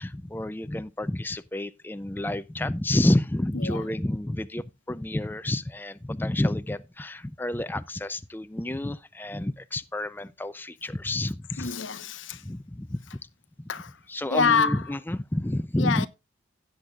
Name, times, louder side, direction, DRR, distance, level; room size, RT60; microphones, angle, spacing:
voice 1, 0.0-11.7 12.4-13.0 13.6-13.7 14.1-16.1, left 1 dB, 10° left, 0.4 m, -29 dB
voice 2, 3.5-3.9 11.6-12.4 13.7-14.0 14.3-14.8 15.8-16.1, left 5 dB, 90° left, 0.9 m, -26 dB
16.0 x 8.0 x 2.4 m
head